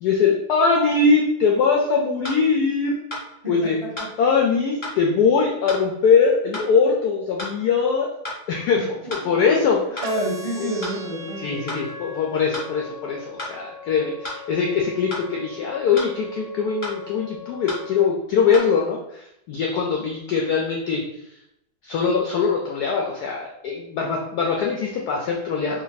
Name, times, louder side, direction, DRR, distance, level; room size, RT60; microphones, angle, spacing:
voice 1, 0.0-3.0 3.5-3.8 4.2-8.1 8.5-10.1 11.4-21.0 21.8-25.8, left 5 dB, 80° left, 0 dB, 0.9 m, -22 dB
sound 1, 2.2-2.4 3.1-3.3 4.0-4.1 4.8-5.0 5.7-5.8 6.5-6.7 7.4-7.6 8.2-8.4 9.1-9.3 10.0-10.1 10.8-11.0 11.7-11.8 12.5-12.7 13.4-13.5 14.2-14.4 15.1-15.3 15.9-16.1 16.8-17.0 17.7-17.8 18.5-18.6, left 1 dB, 25° left, 0.7 m, -32 dB
voice 2, 3.4-4.1 9.0-9.1 10.0-11.9, right 1 dB, 25° right, -5 dB, 0.5 m, -29 dB
sound 2, 10.0-18.0, left 2 dB, 75° right, 1.1 m, -39 dB
3.3 x 2.6 x 3.9 m, 0.81 s
omnidirectional pair, 2.2 m